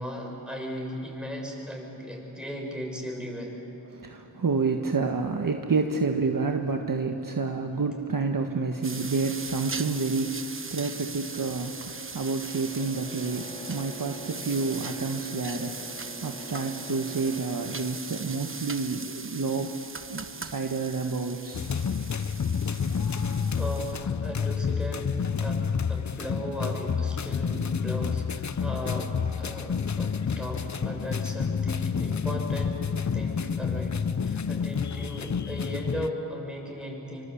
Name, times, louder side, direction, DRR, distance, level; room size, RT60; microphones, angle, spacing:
voice 1, 0.0-3.6 23.6-32.8 33.1-37.3, equal, ahead, -1 dB, 7.4 m, -36 dB
voice 2, 3.9-15.9 16.2-19.8 20.1-21.7, right 4 dB, 50° right, 4 dB, 1.6 m, -29 dB
sound 1, 8.8-23.9, right 4 dB, 30° right, 1.2 m, -40 dB
Boat Water vehicle, 12.7-18.0, left 1 dB, 15° left, 2.4 m, -45 dB
sound 2, 21.5-36.1, left 6 dB, 40° left, 0.8 m, -29 dB
25.5 x 25.0 x 8.6 m, 2.9 s
cardioid pair, 65°, 44 cm